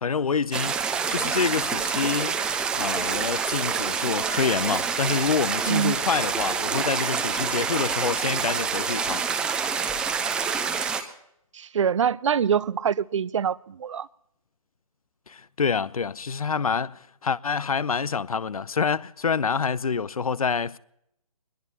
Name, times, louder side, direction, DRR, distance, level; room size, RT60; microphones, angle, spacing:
voice 1, 0.0-0.8 1.1-2.4 2.7-9.2 9.5-9.7 15.3-20.8, left 5 dB, 70° left, 0.7 m, -27 dB
sound 1, 0.5-11.0, right 6 dB, 5° right, 0.6 m, -27 dB
voice 2, 11.6-14.1, right 8 dB, 55° right, 0.5 m, -24 dB
23.0 x 21.0 x 2.9 m
figure-of-eight pair, 145°, 19 cm